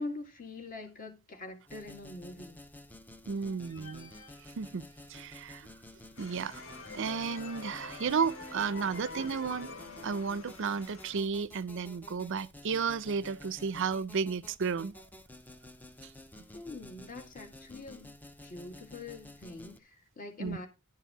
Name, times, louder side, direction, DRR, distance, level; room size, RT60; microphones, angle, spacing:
voice 1, 0.0-2.6 16.5-18.2 18.4-20.7, left 2 dB, 35° left, 1.9 m, -43 dB
sound 1, 1.7-19.8, left 1 dB, 10° left, 0.5 m, -52 dB
voice 2, 3.3-4.1 4.6-5.7 6.2-6.6 6.9-14.9 16.0-16.1 20.4-20.6, right 5 dB, 55° right, 0.5 m, -33 dB
sound 2, 3.6-5.3 5.8-5.9 6.3-10.8, left 3 dB, 55° left, 2.4 m, -47 dB
sound 3, 6.1-11.2, left 3 dB, 70° left, 1.4 m, -52 dB
11.5 x 4.6 x 5.4 m
head